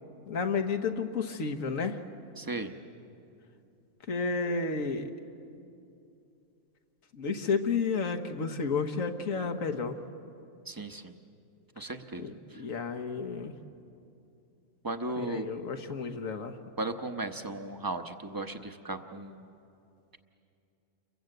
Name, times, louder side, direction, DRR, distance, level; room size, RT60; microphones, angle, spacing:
voice 1, 0.3-2.0 4.1-5.1 7.1-10.0 12.2-13.5 15.2-16.5, left 4 dB, 80° left, 6 dB, 1.7 m, -31 dB
voice 2, 2.4-2.7 10.7-11.1 11.8-12.6 14.8-15.5 16.8-19.5, right 2 dB, 20° right, 7 dB, 0.9 m, -36 dB
29.5 x 23.0 x 7.9 m, 2.7 s
omnidirectional pair, 1.4 m